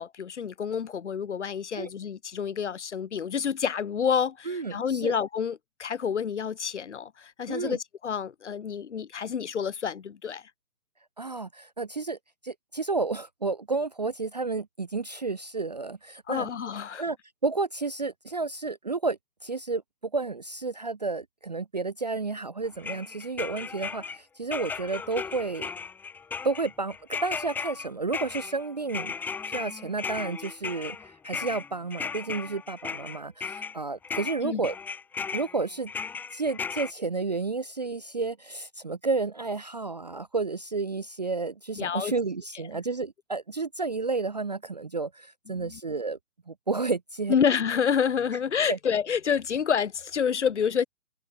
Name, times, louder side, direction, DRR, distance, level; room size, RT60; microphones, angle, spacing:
voice 1, 0.0-10.5 16.3-17.0 34.4-34.6 41.7-42.1 45.5-45.8 47.3-50.9, left 7 dB, 45° left, 3.2 m, -28 dB
voice 2, 4.5-5.2 7.5-7.8 11.2-12.2 12.4-16.5 17.0-17.2 17.4-25.7 26.4-34.7 35.3-35.9 36.3-46.2 46.5-47.4 48.6-48.8, right 3 dB, 25° right, 0.7 m, -31 dB
sound 1, 22.8-24.2 24.5-33.8 34.0-36.9, left 5 dB, 5° left, 2.2 m, -36 dB
hypercardioid pair, 165°, 47 cm